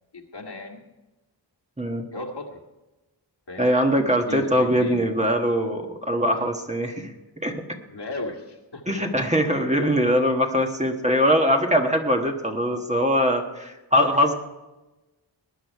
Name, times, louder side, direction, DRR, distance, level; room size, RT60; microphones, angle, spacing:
voice 1, 0.1-0.8 2.1-2.6 3.5-3.7 4.3-5.1 6.3-6.5 7.0-7.1 7.9-9.0, left 2 dB, 60° left, 1 dB, 2.1 m, -36 dB
voice 2, 3.6-7.1 7.4-7.5 8.9-14.3, equal, 15° right, 2 dB, 1.3 m, -22 dB
19.5 x 10.0 x 4.7 m, 1.1 s
wide cardioid pair, 105°, 45 cm